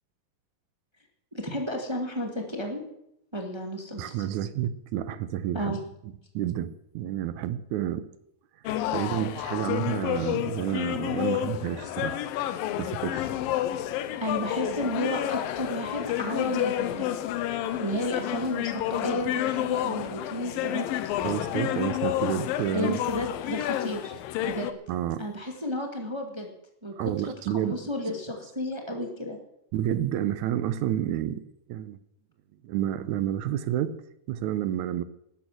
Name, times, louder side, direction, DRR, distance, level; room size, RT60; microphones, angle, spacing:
voice 1, 1.3-2.8 3.3-4.2 5.5-5.8 14.2-17.1 17.8-20.9 22.7-24.1 24.4-24.7 25.2-26.5 26.8-26.9 27.2-29.4, equal, 15° right, 3 dB, 0.9 m, -32 dB
voice 2, 4.0-5.8 6.3-8.1 8.9-12.2 12.8-13.3 21.2-23.0 24.9-25.3 27.0-27.8 29.7-31.4 31.7-32.0 32.6-35.0, right 11 dB, 75° right, 14 dB, 1.8 m, -30 dB
sound 1, 8.7-24.7, left 12 dB, 85° left, 2.6 m, -30 dB
12.5 x 11.5 x 7.9 m, 0.78 s
omnidirectional pair, 4.1 m